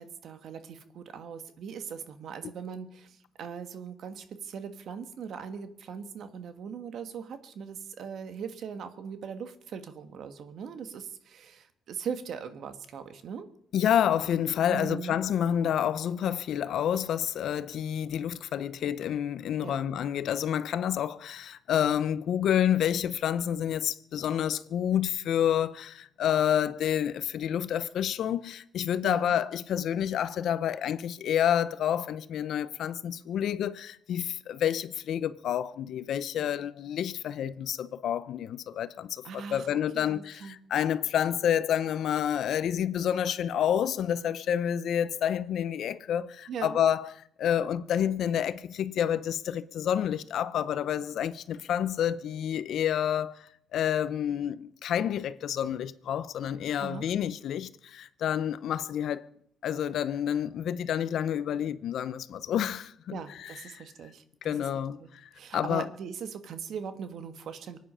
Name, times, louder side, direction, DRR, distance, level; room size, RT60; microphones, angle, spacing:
voice 1, 0.0-13.5 14.7-15.2 19.6-19.8 29.0-29.3 39.2-40.6 46.5-46.8 56.8-57.0 63.1-64.6 65.0-65.1 65.3-67.8, right 6 dB, 70° right, 1.5 m, -40 dB
voice 2, 13.7-47.1 47.4-59.3 59.6-63.8 64.4-65.9, left 9 dB, 70° left, 0.7 m, -29 dB
24.0 x 9.4 x 5.7 m
cardioid pair, 90°, 0 cm